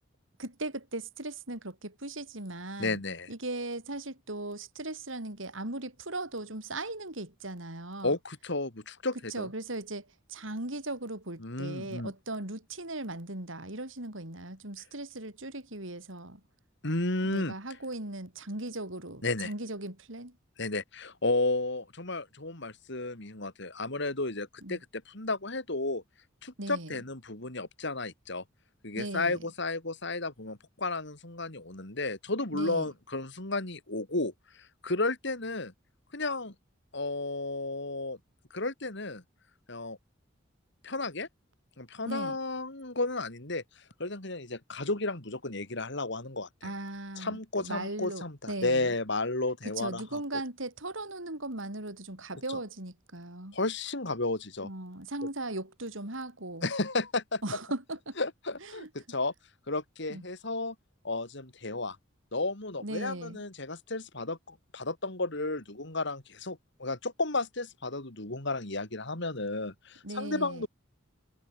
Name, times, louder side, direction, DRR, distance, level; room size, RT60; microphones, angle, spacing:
voice 1, 0.4-3.0 3.3-8.1 9.3-16.4 17.2-20.4 24.6-24.8 26.6-27.0 29.0-29.4 32.5-32.9 42.0-42.4 46.6-48.9 49.8-53.6 54.6-56.7 57.4-58.2 58.6-58.9 60.1-60.2 62.8-63.4 70.0-70.7, right 2 dB, 75° right, 5.8 m, -38 dB
voice 2, 2.8-3.3 8.0-9.5 11.4-12.1 16.8-17.5 19.2-19.5 20.6-24.8 25.1-26.0 26.4-28.4 28.8-34.3 34.8-35.7 36.1-36.5 36.9-38.2 38.5-39.2 39.7-40.0 40.8-41.3 41.8-43.6 44.0-46.7 47.2-50.2 53.5-54.7 56.6-57.4 58.2-59.3 59.7-60.8 61.0-62.0 62.3-70.7, left 2 dB, 60° left, 3.7 m, -33 dB
head